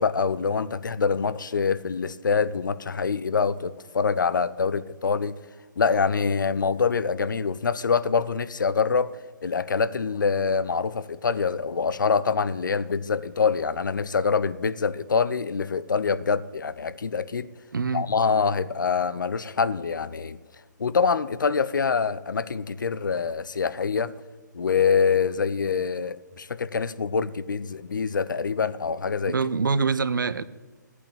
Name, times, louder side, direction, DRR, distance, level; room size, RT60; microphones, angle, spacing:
voice 1, 0.0-5.3 5.8-17.5 17.9-20.4 20.8-24.1 24.5-29.4, left 5 dB, 75° left, 0.8 m, -25 dB
voice 2, 17.7-18.1 29.3-30.4, right 4 dB, 75° right, 0.8 m, -25 dB
15.5 x 8.5 x 8.9 m
figure-of-eight pair, 140°, 11 cm